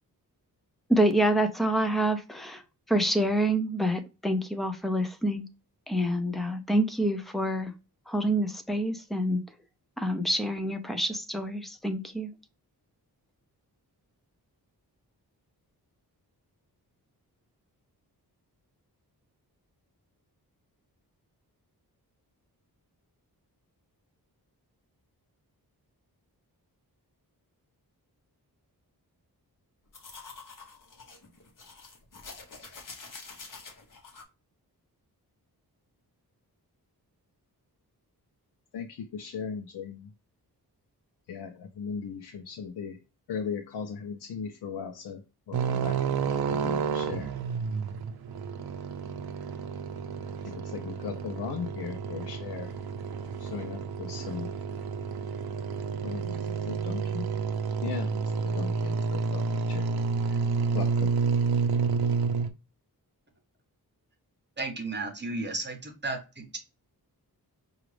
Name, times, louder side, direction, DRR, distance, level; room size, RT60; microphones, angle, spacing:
voice 1, 0.9-2.6 2.9-5.5 5.9-7.7 8.1-9.4 10.0-12.3, right 1 dB, ahead, 0.4 m, -27 dB
sound 1, 29.9-34.2, left 4 dB, 55° left, 0.9 m, -47 dB
voice 2, 38.7-40.1 41.3-43.0 43.3-45.2 45.5-47.3 50.4-52.7 53.4-54.5 56.0-57.3 57.8-60.0 60.3-60.4 60.7-61.1, left 6 dB, 85° left, 0.6 m, -38 dB
sound 2, 45.5-62.5, right 5 dB, 70° right, 0.5 m, -30 dB
voice 3, 64.6-66.6, right 3 dB, 30° right, 0.8 m, -34 dB
4.9 x 2.4 x 3.1 m
wide cardioid pair, 180°, 38 cm